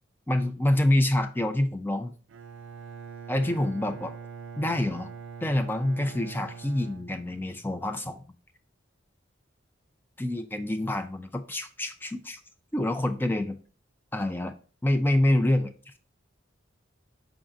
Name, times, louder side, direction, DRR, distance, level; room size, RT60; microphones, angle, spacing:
voice 1, 0.3-2.1 3.3-4.1 4.6-5.1 5.4-8.3 10.2-12.4 12.7-13.6 14.1-14.6 14.8-15.9, left 1 dB, 10° left, 8 dB, 0.3 m, -26 dB
Bowed string instrument, 2.3-7.8, right 6 dB, 80° right, 0.4 m, -43 dB
4.8 x 3.7 x 2.6 m, 0.39 s
head